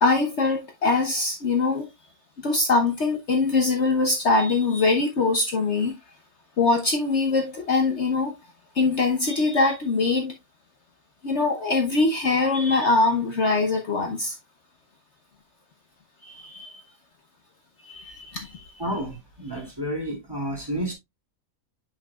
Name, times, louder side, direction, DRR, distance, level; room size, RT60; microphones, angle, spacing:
voice 1, 0.0-1.9 2.4-5.9 6.6-8.3 8.7-10.3 11.2-14.4 16.2-16.8 17.8-18.7, left 3 dB, 55° left, 1.1 m, -23 dB
voice 2, 18.8-20.9, equal, 15° right, 2.7 m, -30 dB
7.7 x 5.8 x 2.3 m
omnidirectional pair, 1.5 m